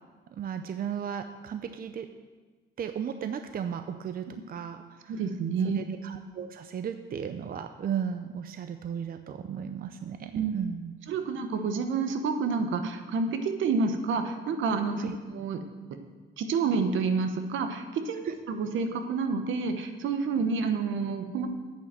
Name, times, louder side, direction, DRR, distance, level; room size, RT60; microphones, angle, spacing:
voice 1, 0.3-2.1 2.8-5.2 5.6-10.9 15.0-15.2 18.3-18.4, right 8 dB, 45° right, 8 dB, 0.6 m, -35 dB
voice 2, 5.1-5.8 10.3-10.5 11.1-15.6 16.4-21.5, right 4 dB, 75° right, 7 dB, 1.1 m, -29 dB
8.4 x 6.8 x 7.6 m, 1.4 s
cardioid pair, 90°, 20 cm